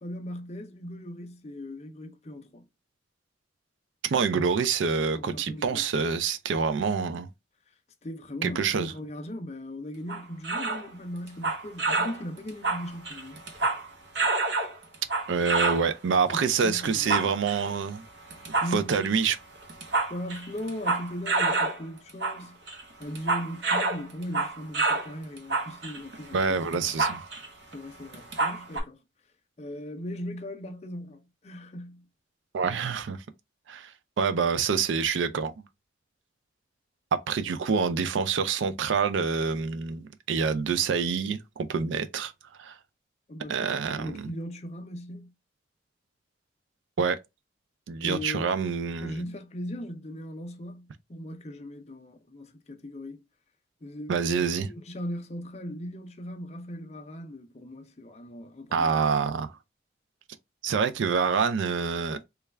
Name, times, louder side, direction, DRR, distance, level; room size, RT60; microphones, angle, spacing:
voice 1, 0.0-2.6 5.1-6.0 8.0-13.4 16.3-17.3 18.6-19.2 19.9-22.6 23.0-26.4 26.8-26.9 27.7-29.0 29.6-32.1 43.3-45.3 48.0-48.5 49.0-53.2 53.8-59.3, left 1 dB, 35° left, 0.5 m, -38 dB
voice 2, 4.0-7.3 8.4-8.9 15.3-18.0 18.7-19.4 26.3-27.2 32.5-33.2 33.7-33.9 34.2-35.5 37.1-42.3 42.6-42.7 43.5-44.3 47.0-47.2 47.9-49.2 54.1-54.7 58.7-59.5 60.6-62.2, right 5 dB, 85° right, 0.4 m, -26 dB
sound 1, 10.1-10.9 11.3-12.2 12.5-13.9 14.2-15.9 16.8-17.7 18.3-19.1 19.6-21.8 22.1-22.4 22.7-25.1 25.4-27.5 27.7-27.8 28.1-28.8, right 3 dB, 65° right, 0.8 m, -28 dB
3.2 x 2.3 x 3.2 m
head